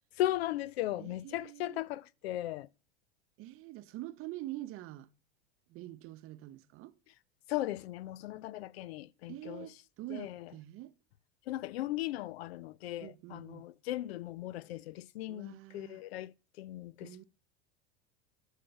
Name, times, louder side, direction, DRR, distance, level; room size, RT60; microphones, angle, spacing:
voice 1, 0.2-2.7 7.5-9.7 10.1-10.5 11.5-17.2, left 14 dB, 75° left, 0.5 m, -37 dB
voice 2, 1.0-1.8 3.4-5.1 5.7-6.9 9.3-10.9 13.0-13.7 15.3-16.0 17.0-17.2, right 16 dB, 45° right, 0.8 m, -45 dB
12.0 x 6.5 x 5.5 m
hypercardioid pair, 95°, 31 cm